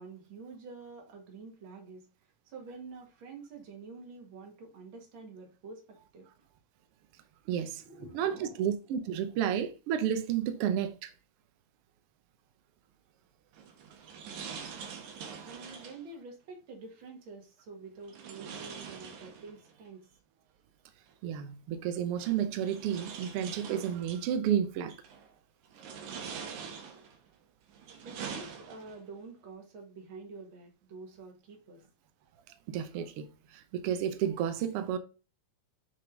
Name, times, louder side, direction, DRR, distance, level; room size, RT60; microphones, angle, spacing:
voice 1, 0.0-2.1 2.5-6.3 7.8-8.7 9.1-9.4 15.4-20.1 28.0-31.8, right 4 dB, 50° right, 2.1 m, -48 dB
voice 2, 7.5-7.8 8.1-11.1 21.2-24.9 32.7-33.2 33.7-35.0, right 9 dB, 65° right, 1.5 m, -31 dB
sound 1, 13.5-16.1 18.1-19.7 21.1-21.2 22.2-24.3 24.9-25.3 25.7-27.2 27.7-29.1, right 6 dB, 85° right, 2.5 m, -44 dB
7.6 x 3.7 x 3.8 m
omnidirectional pair, 3.3 m